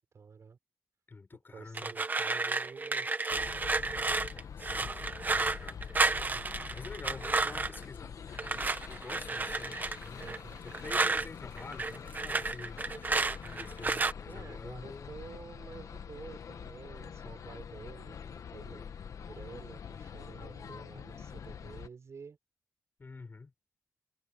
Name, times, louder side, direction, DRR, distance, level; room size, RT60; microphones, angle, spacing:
voice 1, 0.1-0.6 1.5-3.5 6.3-6.5 10.2-10.6 14.3-18.9 19.2-22.4, right 5 dB, 50° right, 5.7 m, -50 dB
voice 2, 1.1-2.1 4.6-5.8 6.7-8.2 8.9-10.3 10.6-13.1 13.4-15.1 23.0-23.5, left 4 dB, 35° left, 6.1 m, -48 dB
sound 1, 1.7-7.8 8.4-11.3 11.6-14.1, right 3 dB, 30° right, 1.5 m, -32 dB
sound 2, 3.3-21.9, left 7 dB, 65° left, 1.2 m, -45 dB
wide cardioid pair, 105°, 6 cm